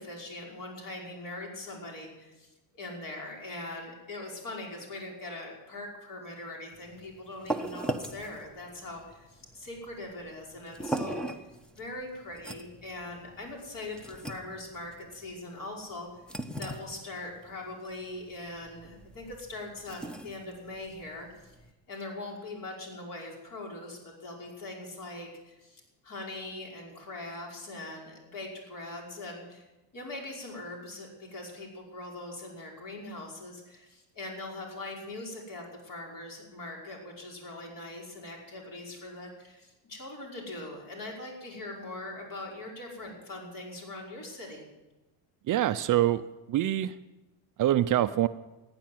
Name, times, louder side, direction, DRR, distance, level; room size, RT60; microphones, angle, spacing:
voice 1, 0.0-11.5 11.7-16.1 16.6-21.5 21.9-29.7 29.9-44.7, left 2 dB, 45° left, -1 dB, 5.4 m, -41 dB
sound 1, 6.7-21.7, right 1 dB, ahead, 1.0 m, -40 dB
voice 2, 45.5-46.2 46.5-47.0 47.6-48.3, right 13 dB, 45° right, 11 dB, 0.6 m, -25 dB
15.0 x 9.8 x 9.3 m, 1.0 s
cardioid pair, 130°, 45 cm